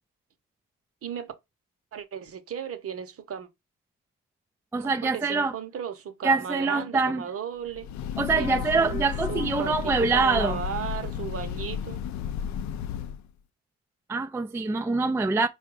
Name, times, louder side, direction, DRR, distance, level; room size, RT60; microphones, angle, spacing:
voice 1, 1.0-1.3 1.9-3.5 4.8-7.9 8.4-12.0, right 8 dB, 50° right, 0.9 m, -35 dB
voice 2, 4.7-5.5 6.2-7.3 8.2-10.6 14.1-15.5, right 4 dB, 10° right, 0.3 m, -24 dB
Breathing / Train, 7.7-13.3, left 8 dB, 70° left, 0.5 m, -33 dB
4.4 x 2.4 x 4.6 m
cardioid pair, 90°, 30 cm